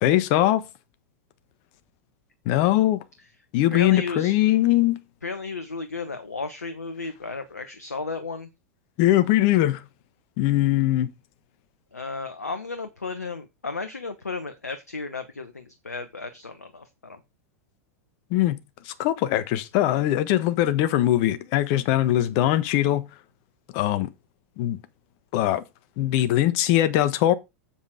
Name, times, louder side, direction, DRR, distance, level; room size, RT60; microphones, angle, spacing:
voice 1, 0.0-0.6 2.5-3.0 3.5-5.0 9.0-9.8 10.4-11.1 18.3-18.6 18.9-23.0 23.7-24.1 24.6-24.8 25.3-25.6 26.0-27.3, left 14 dB, 50° left, 1.3 m, -21 dB
voice 2, 3.7-4.4 5.2-8.5 11.9-17.2, left 4 dB, 85° left, 1.0 m, -34 dB
7.7 x 7.0 x 5.0 m
figure-of-eight pair, 95°, 8 cm